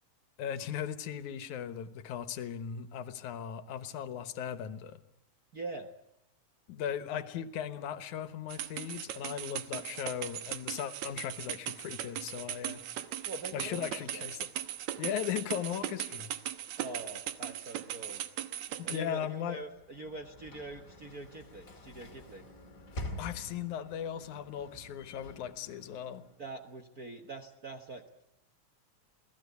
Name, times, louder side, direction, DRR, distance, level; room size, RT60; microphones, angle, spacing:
voice 1, 0.4-5.0 6.7-12.8 13.5-14.5 15.0-16.3 18.8-19.6 23.2-26.3, left 9 dB, 85° left, 12 dB, 2.6 m, -37 dB
voice 2, 5.5-5.9 13.3-14.3 16.8-18.2 18.8-22.4 26.4-28.1, right 3 dB, 45° right, 6 dB, 1.2 m, -44 dB
sound 1, 8.5-19.0, right 11 dB, 75° right, 2.4 m, -39 dB
Sliding door / Slam, 19.5-26.6, left 1 dB, 30° left, 2.4 m, -47 dB
27.5 x 18.0 x 8.3 m, 0.79 s
omnidirectional pair, 3.4 m